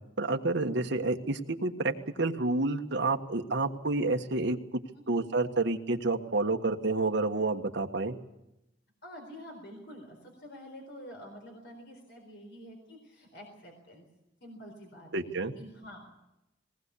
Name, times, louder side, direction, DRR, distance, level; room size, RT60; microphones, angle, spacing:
voice 1, 0.2-1.9 2.2-4.6 5.1-8.2 15.1-15.5, right 3 dB, 65° right, 5 dB, 1.4 m, -29 dB
voice 2, 9.0-14.0 14.4-15.2 15.6-16.2, equal, 65° left, 2 dB, 4.2 m, -48 dB
20.5 x 19.0 x 8.4 m, 0.91 s
head